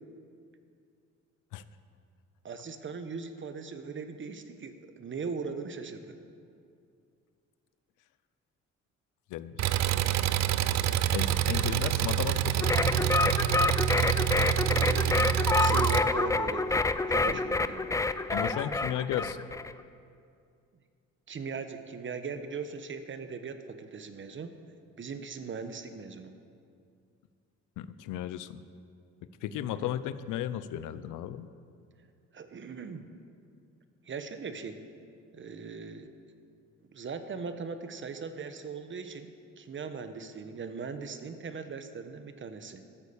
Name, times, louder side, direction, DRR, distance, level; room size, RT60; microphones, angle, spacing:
voice 1, 2.4-6.2 14.6-16.8 17.1-18.0 21.3-24.5 25.0-26.3 29.7-30.0 32.3-33.1 34.0-34.8 35.3-36.1 36.9-42.8, right 5 dB, 40° right, 9 dB, 1.0 m, -39 dB
voice 2, 9.3-9.8 11.1-13.1 17.3-17.4 18.3-19.4 27.8-28.6 29.4-31.5, left 11 dB, 90° left, 13 dB, 0.6 m, -35 dB
Engine, 9.6-16.0, right 11 dB, 65° right, 0.5 m, -27 dB
sound 1, 12.6-19.7, left 3 dB, 10° left, 0.4 m, -28 dB
13.0 x 8.2 x 7.0 m, 2.4 s
cardioid pair, 90°, 30 cm